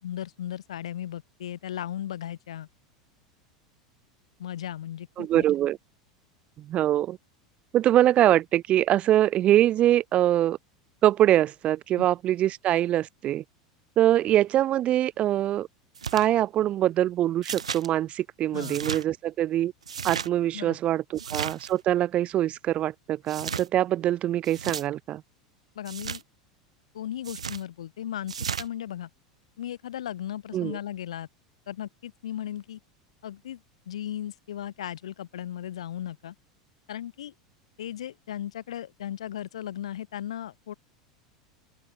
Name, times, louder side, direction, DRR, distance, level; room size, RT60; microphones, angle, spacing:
voice 1, 0.0-2.7 4.4-5.4 12.0-12.1 18.5-18.8 20.5-20.8 25.8-26.2 26.9-29.1 29.6-31.3 31.7-32.8 33.2-36.4 36.9-37.3 37.8-40.7, left 11 dB, 70° left, 3.7 m, -36 dB
voice 2, 5.2-5.8 6.6-7.2 7.7-10.6 11.0-13.4 14.0-15.7 16.1-19.7 20.0-25.2 30.5-30.8, right 12 dB, 35° right, 0.7 m, -23 dB
sound 1, 16.0-16.3 17.4-17.9 18.6-19.0 19.8-20.3 21.2-21.7 23.3-23.7 24.4-24.8 25.9-26.2 27.2-27.6 28.3-28.7, right 7 dB, 80° right, 1.1 m, -34 dB
open air
figure-of-eight pair, 80°, 3 cm